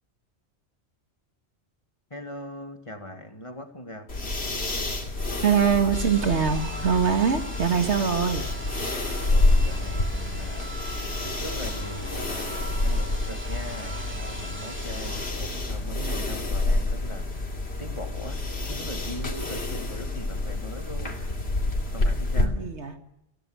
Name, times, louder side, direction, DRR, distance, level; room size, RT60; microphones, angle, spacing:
voice 1, 2.1-4.1 9.2-10.9 11.2-21.2 21.9-22.6, left 1 dB, 25° left, 6 dB, 1.9 m, -40 dB
sound 1, 4.1-22.5, left 2 dB, 65° left, 3.0 m, -28 dB
voice 2, 5.4-8.5 22.4-23.0, right 7 dB, 80° right, 6 dB, 2.1 m, -23 dB
sound 2, 5.9-15.3, right 1 dB, 10° right, 2.7 m, -40 dB
24.5 x 16.0 x 7.8 m, 0.84 s
omnidirectional pair, 1.2 m